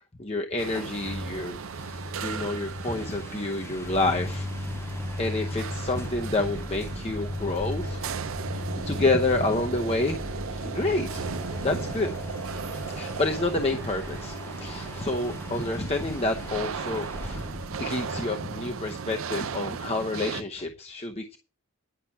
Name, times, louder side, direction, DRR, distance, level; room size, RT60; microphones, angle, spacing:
voice 1, 0.2-4.7 5.2-8.0 8.9-10.2 10.5-11.2 11.6-12.1 12.7-17.5 17.8-21.4, left 2 dB, 30° left, 3 dB, 0.8 m, -29 dB
sound 1, 0.6-20.4, right 6 dB, 70° right, 0.6 m, -37 dB
sound 2, 0.7-19.2, left 1 dB, 10° left, 0.4 m, -37 dB
10.0 x 5.8 x 7.1 m, 0.36 s
head